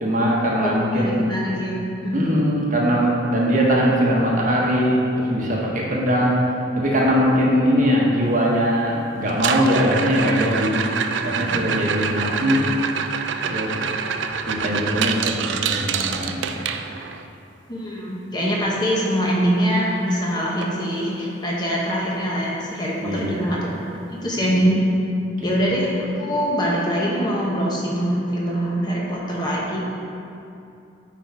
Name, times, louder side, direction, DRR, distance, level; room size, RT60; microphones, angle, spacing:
voice 1, 0.0-1.3 2.1-6.4 6.8-10.8 11.2-12.7 13.4-13.9 14.4-16.5 23.0-23.4 24.5-24.6, equal, 45° right, -3 dB, 1.1 m, -21 dB
voice 2, 0.6-2.2 17.7-23.7 24.1-24.8 25.4-29.8, equal, 25° left, -4 dB, 1.0 m, -23 dB
sound 1, 9.3-17.3 19.5-19.6 19.9-20.2 20.6-20.7 21.3-21.4 23.3-23.4, right 6 dB, 75° right, 0.4 m, -26 dB
9.0 x 4.0 x 4.7 m, 2.7 s
head